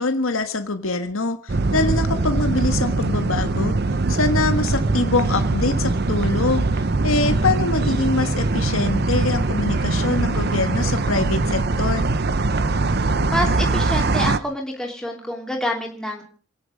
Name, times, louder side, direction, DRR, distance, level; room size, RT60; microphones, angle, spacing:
voice 1, 0.0-3.7 4.1-12.1, left 3 dB, 85° left, 8 dB, 1.5 m, -24 dB
sound 1, 1.5-14.4, right 3 dB, 50° right, 0.8 m, -22 dB
voice 2, 12.9-16.2, left 1 dB, 5° left, 0 dB, 3.0 m, -27 dB
27.5 x 10.0 x 5.1 m, 0.41 s
head